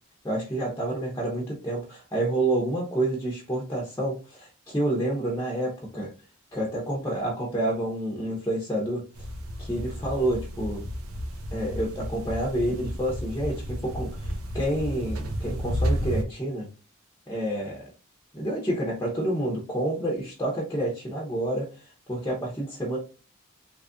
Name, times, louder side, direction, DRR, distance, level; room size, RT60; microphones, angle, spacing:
voice 1, 0.2-6.1 6.5-9.1 9.6-10.9 11.5-16.7 17.3-17.9 18.3-21.7 22.1-23.0, right 1 dB, 15° left, -3 dB, 0.9 m, -29 dB
sound 1, 9.1-16.2, equal, 90° right, 0.7 m, -32 dB
3.3 x 2.5 x 3.6 m, 0.35 s
head